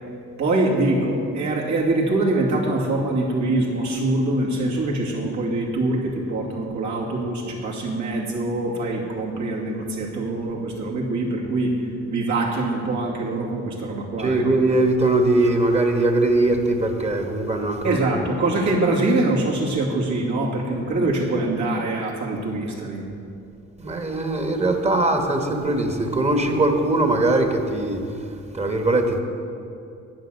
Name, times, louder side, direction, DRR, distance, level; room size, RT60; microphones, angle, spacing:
voice 1, 0.4-14.4 17.8-23.0, right 2 dB, 70° right, -3 dB, 2.6 m, -24 dB
voice 2, 14.2-18.0 23.8-28.0 28.5-29.2, right 2 dB, 20° right, 4 dB, 1.4 m, -21 dB
10.5 x 9.1 x 6.5 m, 2.6 s
cardioid pair, 90°, 30 cm